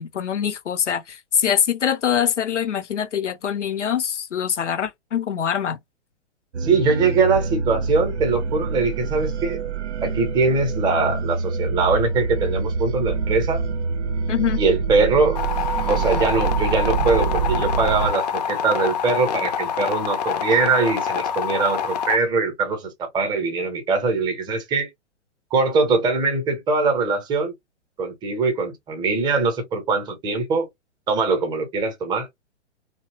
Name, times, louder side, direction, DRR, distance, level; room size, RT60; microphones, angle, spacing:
voice 1, 0.0-5.8 14.3-14.6, left 8 dB, 80° left, 0.6 m, -24 dB
sound 1, 6.5-18.1, right 5 dB, 70° right, 0.5 m, -26 dB
voice 2, 6.6-9.6 10.0-13.6 14.6-15.4 15.9-24.9 25.5-27.5 28.0-30.7 31.1-32.3, right 4 dB, 10° right, 0.6 m, -22 dB
sound 2, 15.3-22.2, left 8 dB, 40° left, 0.4 m, -26 dB
2.7 x 2.0 x 2.8 m
figure-of-eight pair, 115°, 35 cm